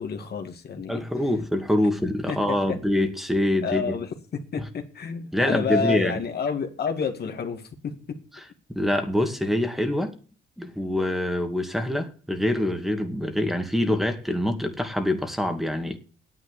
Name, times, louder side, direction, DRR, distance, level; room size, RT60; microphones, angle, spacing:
voice 1, 0.0-1.0 2.3-2.8 3.6-4.1 4.5-7.9, left 6 dB, 55° left, 2.3 m, -29 dB
voice 2, 0.9-4.0 5.3-6.2 8.7-10.2 10.6-16.0, left 1 dB, ahead, 2.4 m, -25 dB
9.9 x 8.5 x 8.3 m
cardioid pair, 90°, 20 cm